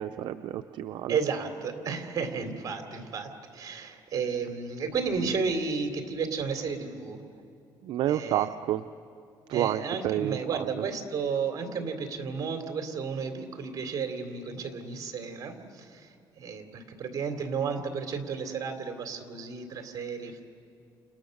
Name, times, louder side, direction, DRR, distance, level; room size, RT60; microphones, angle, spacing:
voice 1, 0.0-1.2 7.8-8.8 9.5-10.6, right 12 dB, 70° right, 9 dB, 0.6 m, -29 dB
voice 2, 1.1-7.2 8.1-8.5 9.5-20.4, right 5 dB, 45° right, 5 dB, 3.1 m, -33 dB
29.5 x 28.5 x 6.6 m, 2.4 s
cardioid pair, 120°, 8 cm